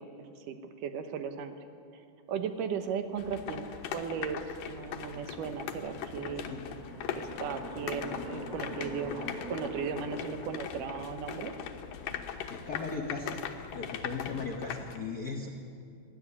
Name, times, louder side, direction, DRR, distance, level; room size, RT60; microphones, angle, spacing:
voice 1, 0.0-1.5 2.3-3.7 3.9-4.4 4.7-6.5 7.1-11.5, right 6 dB, 80° right, 8 dB, 2.7 m, -36 dB
sound 1, 3.0-3.1 4.3-12.2, left 1 dB, 15° right, 6.3 m, -45 dB
sound 2, 3.2-15.0, left 8 dB, 85° left, 2.7 m, -40 dB
voice 2, 12.5-13.4 13.7-15.5, left 4 dB, 65° left, 2 dB, 0.9 m, -37 dB
19.5 x 13.5 x 9.8 m, 2.4 s
omnidirectional pair, 3.7 m